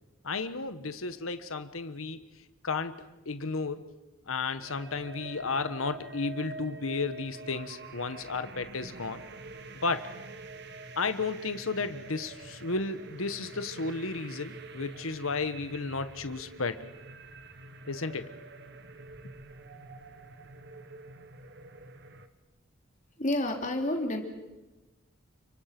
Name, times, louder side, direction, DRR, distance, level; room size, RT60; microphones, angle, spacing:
voice 1, 0.2-2.2 2.6-3.9 4.3-9.2 9.8-10.1 11.0-16.8 17.9-18.3 19.2-19.3, left 4 dB, 80° left, 11 dB, 1.4 m, -33 dB
sound 1, 4.6-22.3, right 3 dB, 55° right, 1.8 m, -46 dB
voice 2, 23.2-24.2, left 1 dB, 35° left, 3 dB, 3.5 m, -29 dB
30.0 x 24.0 x 6.1 m, 1.1 s
head